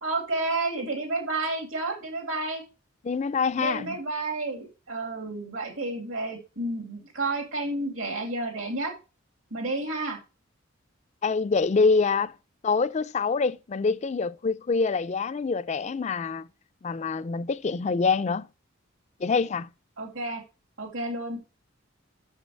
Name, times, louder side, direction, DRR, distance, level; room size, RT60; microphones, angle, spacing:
voice 1, 0.0-2.6 3.6-8.9 9.5-10.2 20.0-20.4 20.8-21.4, right 2 dB, 75° right, 2.5 m, -31 dB
voice 2, 3.0-3.9 11.2-12.3 12.6-16.5 16.8-18.5 19.2-19.7, left 4 dB, 35° left, 0.4 m, -25 dB
6.8 x 6.3 x 6.3 m
head